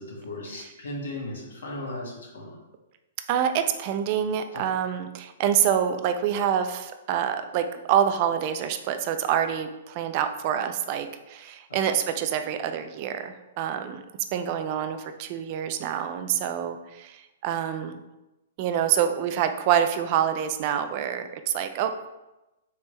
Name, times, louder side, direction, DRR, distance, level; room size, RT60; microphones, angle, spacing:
voice 1, 0.0-2.5 4.5-4.6, left 1 dB, 80° left, -2 dB, 1.3 m, -36 dB
voice 2, 3.3-14.0 14.3-18.0 18.6-21.9, right 9 dB, 45° right, 8 dB, 0.4 m, -26 dB
3.4 x 3.2 x 3.1 m, 0.98 s
hypercardioid pair, 130°, 0 cm